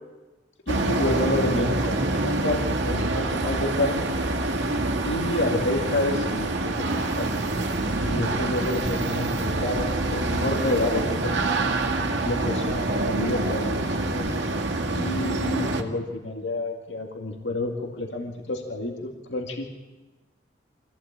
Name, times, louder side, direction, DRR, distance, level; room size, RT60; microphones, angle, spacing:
voice 1, 0.7-4.1 5.0-11.3 12.2-14.4 15.0-19.7, left 2 dB, 75° left, 2 dB, 2.3 m, -29 dB
sound 1, 0.7-15.8, right 2 dB, 75° right, 2.1 m, -26 dB
25.0 x 16.5 x 8.6 m, 1.2 s
head